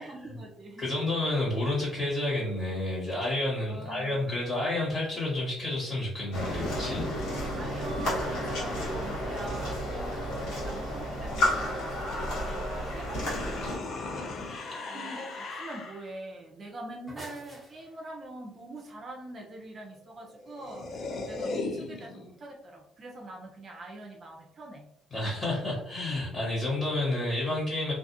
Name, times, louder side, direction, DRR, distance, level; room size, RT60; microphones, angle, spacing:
voice 1, 0.0-0.9 3.7-4.3 7.5-24.9, right 2 dB, 45° right, 0 dB, 0.5 m, -44 dB
voice 2, 0.8-7.1 25.1-27.9, left 2 dB, 30° left, -6 dB, 1.3 m, -30 dB
sound 1, 6.3-13.8, equal, 75° left, 1.3 m, -31 dB
sound 2, 10.4-16.1 20.0-20.1 20.3-22.3, left 3 dB, 55° left, 0.5 m, -39 dB
sound 3, 16.7-18.3, right 1 dB, ahead, 0.9 m, -47 dB
2.5 x 2.3 x 2.6 m, 0.79 s
supercardioid pair, 80°, 0 cm